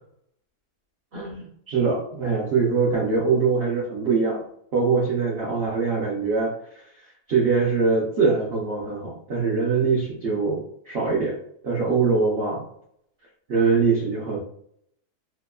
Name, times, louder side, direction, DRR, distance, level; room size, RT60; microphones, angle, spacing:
voice 1, 1.1-4.4 4.7-6.5 7.3-10.6 10.9-11.3 11.6-12.6 13.5-14.4, right 4 dB, 60° right, -5 dB, 0.7 m, -23 dB
2.9 x 2.2 x 2.3 m, 0.69 s
omnidirectional pair, 1.7 m